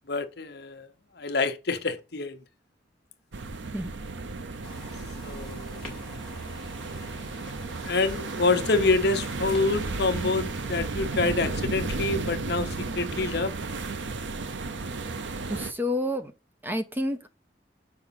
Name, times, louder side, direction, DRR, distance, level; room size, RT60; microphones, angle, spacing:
voice 1, 0.1-0.9 1.2-2.4 5.2-6.2 7.8-12.7 12.9-13.5, left 3 dB, 60° left, 0.9 m, -27 dB
sound 1, 3.3-15.7, right 3 dB, 80° right, 0.7 m, -34 dB
sound 2, 4.6-10.8, left 2 dB, 5° left, 2.2 m, -46 dB
voice 2, 15.5-16.3 16.6-17.3, left 1 dB, 10° right, 0.7 m, -29 dB
6.6 x 4.9 x 5.7 m
head